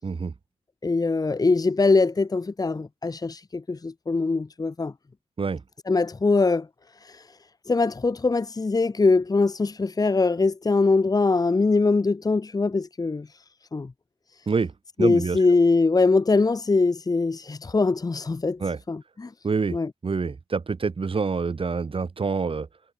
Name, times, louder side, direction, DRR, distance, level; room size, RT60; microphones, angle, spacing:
voice 1, 0.0-0.3 5.4-5.6 14.5-14.7 15.0-15.4 18.6-18.8 19.4-19.8 20.0-22.7, right 4 dB, 50° right, 5.6 m, -26 dB
voice 2, 0.8-4.9 5.9-6.7 7.0-7.2 7.7-13.3 13.7-13.9 15.0-18.6 18.9-19.3 19.7-19.9, left 3 dB, 35° left, 1.2 m, -22 dB
supercardioid pair, 50°, 12 cm